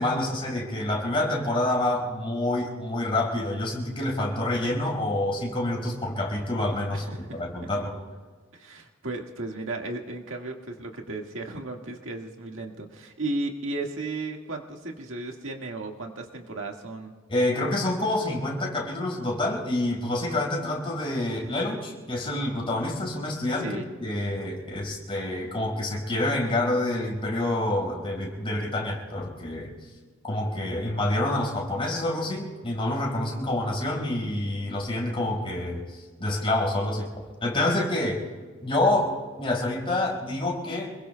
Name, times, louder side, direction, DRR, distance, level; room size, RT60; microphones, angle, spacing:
voice 1, 0.0-8.0 17.3-29.7 30.2-37.1 37.4-38.2 38.6-39.1 39.4-41.0, left 1 dB, 25° left, -2 dB, 5.2 m, -27 dB
voice 2, 6.9-7.4 8.5-17.1 23.6-23.9, right 2 dB, 75° right, 2 dB, 1.8 m, -35 dB
28.0 x 22.0 x 2.3 m, 1.5 s
head